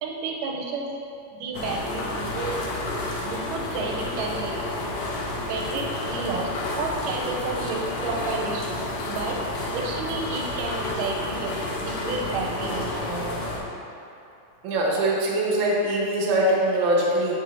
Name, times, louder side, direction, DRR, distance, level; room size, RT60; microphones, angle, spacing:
voice 1, 0.0-1.0 1.3-2.6 3.2-4.6 5.5-8.8 9.1-9.4 9.7-13.7, right 4 dB, 80° right, 0 dB, 2.1 m, -31 dB
sound 1, 1.5-13.6, left 2 dB, 75° left, 2.2 m, -30 dB
voice 2, 14.6-17.4, right 1 dB, 65° right, -4 dB, 1.1 m, -22 dB
7.8 x 6.2 x 2.6 m, 2.8 s
omnidirectional pair, 3.9 m